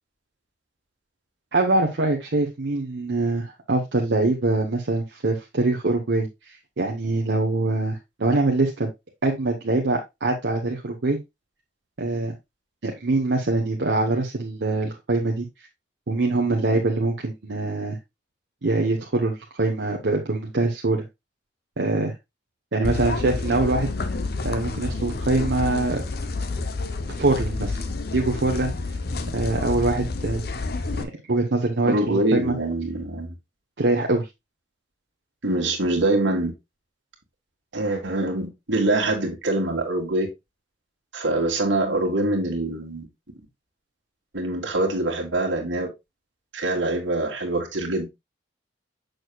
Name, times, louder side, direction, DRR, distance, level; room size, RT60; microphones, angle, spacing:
voice 1, 1.5-8.9 9.2-11.2 12.0-12.4 12.8-15.5 16.1-18.0 18.6-21.0 21.8-22.1 22.7-23.9 24.4-26.0 27.2-27.8 28.1-28.7 29.3-30.4 31.0-32.6 33.8-34.3, right 2 dB, 65° right, 0.9 m, -24 dB
sound 1, 22.8-31.0, left 3 dB, 55° left, 0.6 m, -29 dB
voice 2, 31.8-33.4 35.4-36.5 37.7-40.3 41.1-43.1 44.3-45.9 46.5-48.1, right 2 dB, 85° right, 1.8 m, -24 dB
6.5 x 6.3 x 2.3 m
head